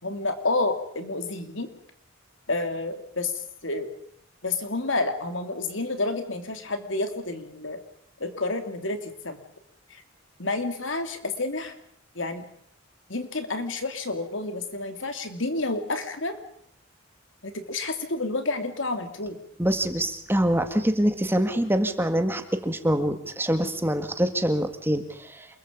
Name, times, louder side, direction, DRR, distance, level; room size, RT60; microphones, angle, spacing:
voice 1, 0.0-1.7 2.5-3.3 3.6-3.9 4.4-7.8 8.2-9.4 9.9-10.0 10.4-11.7 12.1-12.4 13.1-16.4 17.4-19.4, left 2 dB, 70° left, 7 dB, 3.0 m, -29 dB
voice 2, 19.6-25.5, right 1 dB, 10° right, 8 dB, 1.8 m, -25 dB
28.0 x 22.0 x 5.3 m, 0.67 s
head